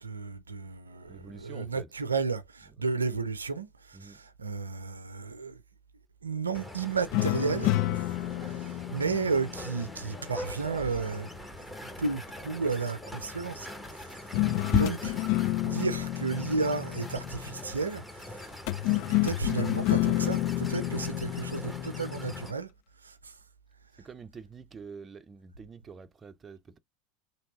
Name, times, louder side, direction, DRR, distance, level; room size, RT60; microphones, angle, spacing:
voice 1, 0.0-5.6 6.2-7.8 8.4-11.3 12.0-13.7 14.0-14.2 14.7-15.2 15.6-18.3 18.9-22.7 23.0-23.3, right 4 dB, 85° right, 0.5 m, -33 dB
voice 2, 1.1-1.9 2.6-2.9 3.9-4.2 24.0-26.8, right 5 dB, 25° right, 0.5 m, -47 dB
sound 1, 6.5-22.5, left 1 dB, 5° left, 1.0 m, -41 dB
sound 2, 7.1-10.5 14.3-17.7 18.7-22.5, left 16 dB, 55° left, 0.3 m, -30 dB
3.4 x 2.8 x 2.9 m
figure-of-eight pair, 80°, 0 cm